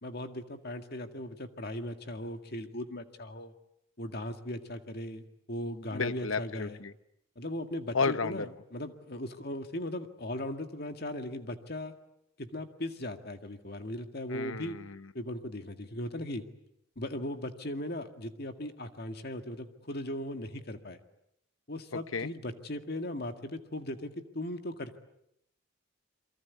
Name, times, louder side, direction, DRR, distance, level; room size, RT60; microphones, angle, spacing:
voice 1, 0.0-3.5 4.0-6.8 7.4-11.9 12.4-14.8 15.1-16.4 17.0-21.0 21.7-25.0, left 1 dB, 50° left, 7 dB, 1.9 m, -38 dB
voice 2, 5.9-6.9 7.9-8.5 14.3-15.1 21.9-22.3, left 4 dB, 80° left, 13 dB, 1.0 m, -32 dB
28.5 x 24.0 x 8.3 m, 0.79 s
head